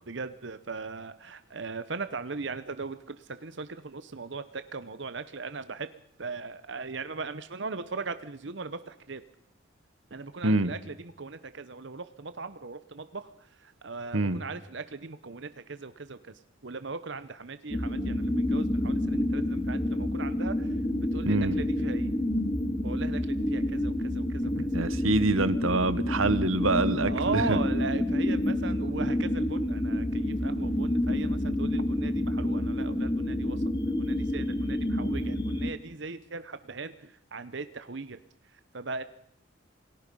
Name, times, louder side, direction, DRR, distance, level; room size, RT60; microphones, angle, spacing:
voice 1, 0.1-5.9 6.2-9.2 10.1-20.8 21.1-22.1 22.8-24.7 27.1-38.2 38.5-39.0, right 4 dB, 60° right, 12 dB, 0.9 m, -38 dB
sound 1, 17.7-35.7, left 1 dB, 20° left, 0.9 m, -28 dB
voice 2, 21.2-21.6 24.6-27.6, right 2 dB, 90° right, 14 dB, 1.3 m, -26 dB
28.0 x 19.0 x 5.5 m, 0.71 s
head